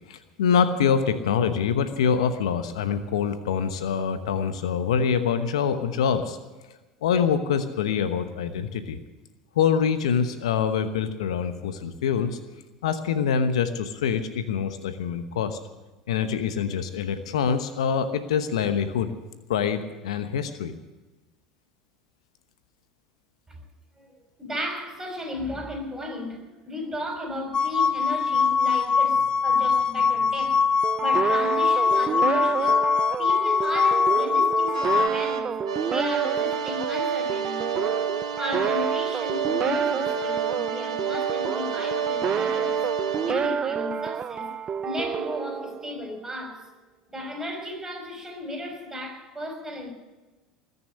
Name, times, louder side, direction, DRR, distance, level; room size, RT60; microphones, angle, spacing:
voice 1, 0.1-6.4 7.0-9.0 9.6-12.4 12.8-15.6 16.1-19.1 19.5-20.7, left 7 dB, 75° left, 1.0 m, -25 dB
voice 2, 24.4-30.7 31.0-32.8 33.2-35.6 35.8-37.8 38.4-42.9 43.2-46.7 47.1-49.9, left 1 dB, 15° right, 5.6 m, -34 dB
sound 1, 27.5-35.1, left 5 dB, 25° left, 0.4 m, -22 dB
sound 2, 30.8-46.2, right 7 dB, 30° right, 0.7 m, -29 dB
sound 3, 34.7-43.3, right 7 dB, 85° right, 1.2 m, -30 dB
20.0 x 6.8 x 10.0 m
hypercardioid pair, 75°, 3 cm